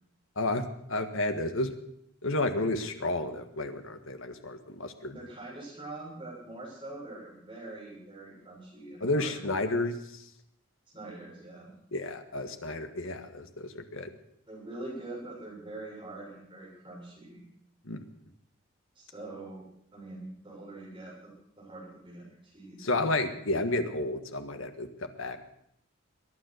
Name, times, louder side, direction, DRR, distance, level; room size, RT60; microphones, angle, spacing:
voice 1, 0.9-1.7 2.2-5.2 9.0-10.2 11.9-14.1 17.8-18.0 22.8-25.4, left 2 dB, 75° left, 7 dB, 1.6 m, -31 dB
voice 2, 5.1-9.4 10.9-11.7 14.5-17.4 19.0-19.6 19.9-23.2, right 2 dB, 25° right, -3 dB, 7.3 m, -44 dB
22.0 x 9.7 x 6.6 m, 0.73 s
head